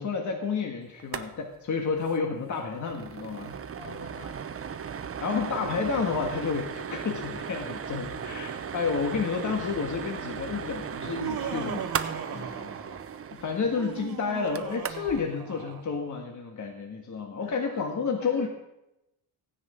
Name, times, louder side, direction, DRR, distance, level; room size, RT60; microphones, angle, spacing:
voice 1, 0.0-3.6 5.2-11.9 13.3-18.5, left 5 dB, 45° left, 3 dB, 1.7 m, -30 dB
sound 1, 1.0-1.3 1.5-1.6 2.0-2.2 2.5-15.2, right 7 dB, 35° right, 0.8 m, -37 dB
voice 2, 3.8-4.5 12.3-12.8 17.4-18.5, left 5 dB, 85° left, -2 dB, 4.3 m, -46 dB
Laughter, 11.0-13.2 13.6-16.0, right 7 dB, 60° right, 1.8 m, -38 dB
15.5 x 9.7 x 5.1 m, 0.90 s
cardioid pair, 125°, 41 cm